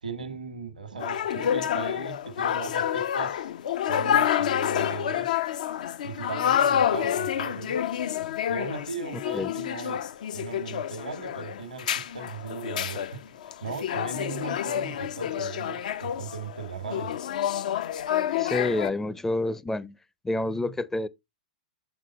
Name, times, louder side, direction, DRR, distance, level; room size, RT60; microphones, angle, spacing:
voice 1, 0.0-3.5 3.9-5.3 6.0-7.9 8.5-10.0 10.3-17.1, right 5 dB, 90° right, 1.3 m, -38 dB
sound 1, 1.0-18.9, left 10 dB, 65° left, 0.5 m, -28 dB
voice 2, 18.4-20.0 20.2-21.1, left 2 dB, 10° left, 0.5 m, -28 dB
8.0 x 3.9 x 3.9 m
hypercardioid pair, 110°, 4 cm